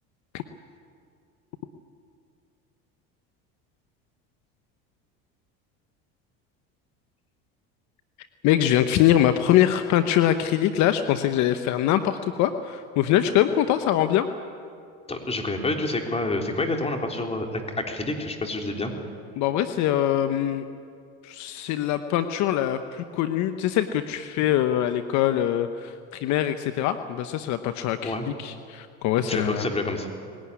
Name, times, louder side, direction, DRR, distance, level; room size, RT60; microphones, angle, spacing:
voice 1, 8.4-14.3 19.4-20.6 21.2-29.7, left 11 dB, 65° left, 9 dB, 1.0 m, -23 dB
voice 2, 15.1-18.9 28.0-28.3 29.2-30.1, left 2 dB, 20° left, 3 dB, 3.5 m, -28 dB
20.5 x 17.5 x 9.7 m, 2.4 s
supercardioid pair, 95°, 31 cm